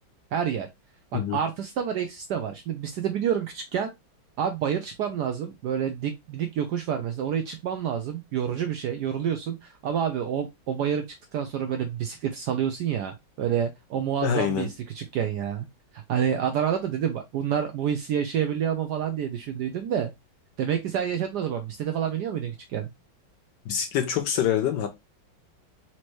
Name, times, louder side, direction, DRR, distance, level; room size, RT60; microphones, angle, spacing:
voice 1, 0.3-0.7 1.1-3.9 4.4-11.0 11.3-15.7 15.9-20.1 20.6-22.9, right 8 dB, 75° right, 0.9 m, -28 dB
voice 2, 14.2-14.7 23.7-24.9, left 9 dB, 70° left, 1.1 m, -25 dB
4.3 x 2.9 x 3.1 m
omnidirectional pair, 2.2 m